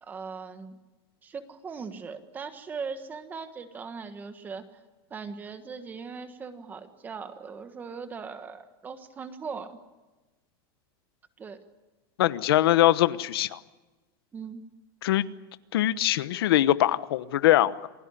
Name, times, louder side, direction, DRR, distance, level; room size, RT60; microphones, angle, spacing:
voice 1, 0.0-0.8 1.2-4.6 5.1-9.8 11.4-11.6 14.3-14.6, right 5 dB, 15° right, 1.4 m, -39 dB
voice 2, 12.2-13.6 15.0-15.3 15.7-17.9, left 14 dB, 80° left, 1.1 m, -22 dB
28.0 x 16.5 x 9.7 m
supercardioid pair, 170°, 12 cm